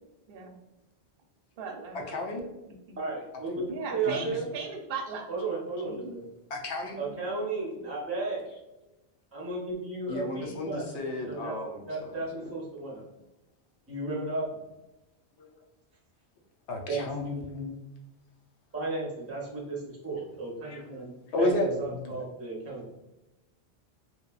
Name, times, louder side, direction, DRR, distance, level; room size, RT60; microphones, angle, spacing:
voice 1, 1.6-2.0 3.7-5.3 5.9-6.1 7.0-7.2, right 5 dB, 65° right, 2 dB, 0.7 m, -37 dB
voice 2, 2.1-2.4 3.5-3.6 4.1-4.4 6.5-7.0 10.1-11.8 15.4-15.5 16.7-17.8 20.6-20.8 21.3-22.2, left 1 dB, 85° left, 1 dB, 0.9 m, -32 dB
voice 3, 3.0-4.5 5.3-6.2 7.0-8.4 9.3-10.9 11.3-11.6 11.9-13.1 13.9-14.7 16.9-17.0 18.7-21.1 21.4-23.0, right 3 dB, 15° right, -4 dB, 0.5 m, -34 dB
3.0 x 2.1 x 2.3 m, 0.97 s
omnidirectional pair, 1.1 m